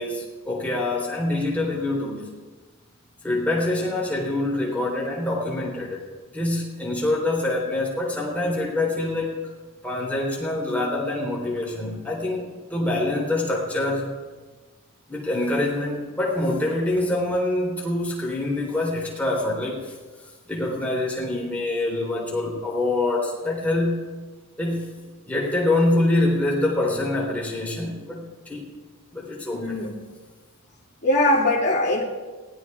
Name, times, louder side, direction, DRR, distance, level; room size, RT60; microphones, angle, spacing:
voice 1, 0.0-2.3 3.2-6.0 6.3-9.4 9.8-14.1 15.1-20.0 20.5-24.1 24.6-24.9 25.3-28.7 29.1-29.8, left 2 dB, 5° left, -4 dB, 3.6 m, -25 dB
voice 2, 29.5-30.0 31.0-32.0, left 1 dB, 50° left, -4 dB, 2.5 m, -21 dB
23.0 x 17.5 x 2.4 m, 1.4 s
head